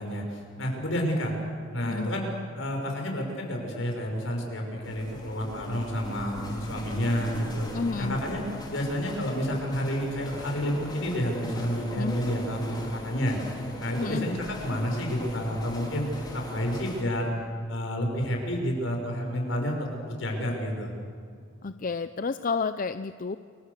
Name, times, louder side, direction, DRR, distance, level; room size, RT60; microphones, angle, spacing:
voice 1, 0.0-1.3 1.7-2.3 2.5-7.7 8.0-8.4 8.7-13.4 13.8-16.1 16.3-17.3 17.7-20.9, equal, 70° left, 2 dB, 6.0 m, -30 dB
sound 1, 4.8-17.0, left 1 dB, 20° left, 4.4 m, -40 dB
voice 2, 7.6-8.2 12.0-12.2 14.0-14.3 21.6-23.4, left 4 dB, 40° left, 11 dB, 0.5 m, -30 dB
29.5 x 23.5 x 6.7 m, 2.3 s
head